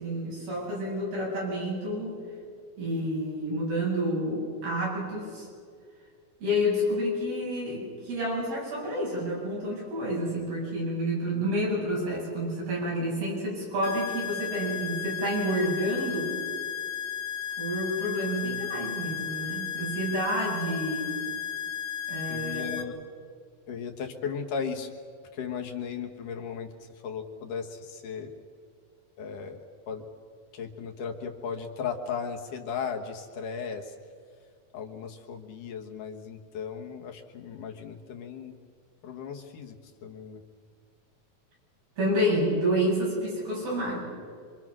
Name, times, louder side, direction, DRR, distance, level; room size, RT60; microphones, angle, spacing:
voice 1, 0.0-2.2 2.8-5.5 6.4-16.3 17.6-21.1 22.1-22.7 42.0-44.0, equal, 85° right, -5 dB, 10.0 m, -29 dB
sound 1, 13.8-22.8, left 9 dB, 80° left, 4.1 m, -34 dB
voice 2, 22.3-23.0 23.7-24.9 25.3-28.3 29.2-30.1 30.5-34.0 34.7-38.6 39.0-40.4, left 6 dB, 65° left, 3 dB, 2.7 m, -36 dB
26.5 x 25.0 x 6.2 m, 2.1 s
omnidirectional pair, 4.3 m